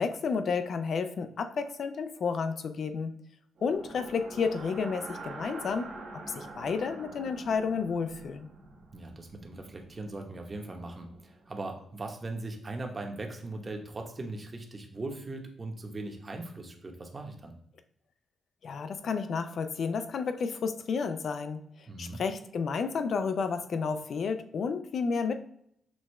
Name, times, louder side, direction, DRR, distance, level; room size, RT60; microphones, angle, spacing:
voice 1, 0.0-3.1 3.6-5.9 6.3-8.5 18.6-21.6 22.0-25.5, left 5 dB, 60° left, 9 dB, 0.4 m, -31 dB
sound 1, 3.6-11.6, right 2 dB, 75° right, 1.1 m, -46 dB
voice 2, 8.9-17.5 21.9-22.2, right 2 dB, 30° right, 2 dB, 0.9 m, -39 dB
6.1 x 2.3 x 3.1 m, 0.69 s
cardioid pair, 80°, 0 cm